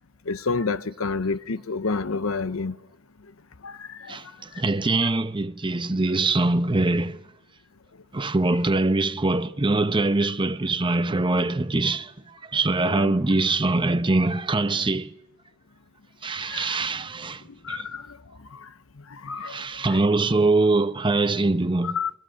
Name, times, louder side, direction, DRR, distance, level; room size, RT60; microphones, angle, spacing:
voice 1, 0.3-2.8 3.6-4.2 12.8-13.1 16.5-16.8 17.6-18.2 18.5-18.7 19.1-19.6 19.9-20.0 21.8-22.1, left 4 dB, 80° left, 0.8 m, -29 dB
voice 2, 4.1-7.2 8.1-15.1 16.2-17.9 19.5-22.0, right 2 dB, 25° right, 0.8 m, -23 dB
28.5 x 22.5 x 6.4 m
head